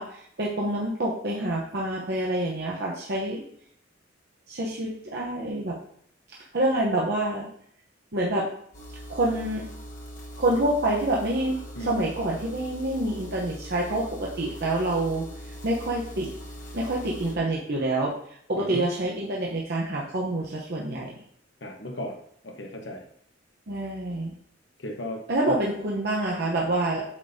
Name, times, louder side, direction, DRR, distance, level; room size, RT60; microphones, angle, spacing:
voice 1, 0.0-3.4 4.5-5.7 6.5-7.5 8.1-8.4 9.1-9.6 10.4-15.3 15.6-16.3 16.7-18.1 18.5-21.1 23.7-24.3 25.3-27.0, right 1 dB, 60° right, -4 dB, 0.9 m, -27 dB
sound 1, 8.7-17.4, equal, 45° left, 1.2 m, -41 dB
voice 2, 21.6-22.2 22.4-23.0 24.8-25.2 25.5-25.6, left 1 dB, 70° left, 0 dB, 1.1 m, -35 dB
8.3 x 5.2 x 2.7 m, 0.66 s
head